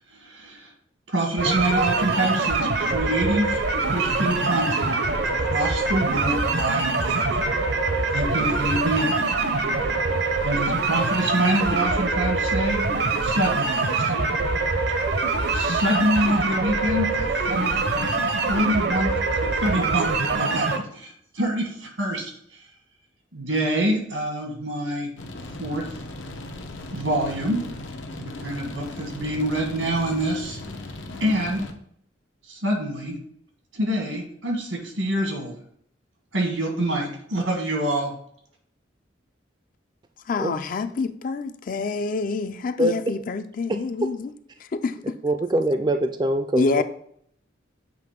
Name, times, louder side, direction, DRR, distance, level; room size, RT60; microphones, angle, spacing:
voice 1, 0.1-0.7 1.1-5.0 5.4-7.4 8.1-9.3 10.4-12.8 13.2-14.1 15.5-18.2 18.5-19.1 19.6-22.6 23.3-25.1 25.6-25.9 26.9-27.6 28.2-30.6 31.2-31.7 32.5-33.2 33.7-35.5 36.3-38.1, right 1 dB, 90° right, 1.9 m, -26 dB
sound 1, 1.4-20.8, right 3 dB, 60° right, 0.7 m, -24 dB
sound 2, 25.2-31.7, left 2 dB, 80° left, 0.8 m, -37 dB
voice 2, 40.2-44.3 44.6-45.2 46.5-46.8, left 4 dB, 45° left, 0.4 m, -27 dB
voice 3, 45.2-46.7, right 1 dB, 25° right, 0.4 m, -22 dB
7.6 x 3.0 x 5.1 m
head